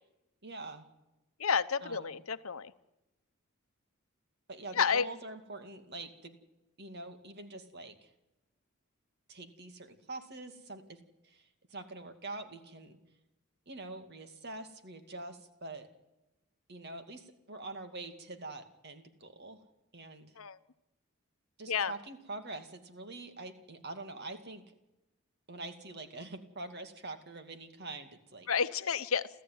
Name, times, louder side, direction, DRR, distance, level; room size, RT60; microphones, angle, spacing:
voice 1, 0.4-0.9 1.8-2.1 4.5-6.3 6.8-8.1 9.3-11.0 11.2-13.0 13.7-15.9 16.7-19.6 19.9-20.3 21.6-24.6 25.5-28.5, right 2 dB, 50° right, 7 dB, 2.3 m, -45 dB
voice 2, 1.4-2.7 4.8-5.1 20.4-20.6 21.7-21.9 28.5-29.3, left 6 dB, 75° left, 13 dB, 0.9 m, -30 dB
29.5 x 13.5 x 9.4 m, 0.98 s
head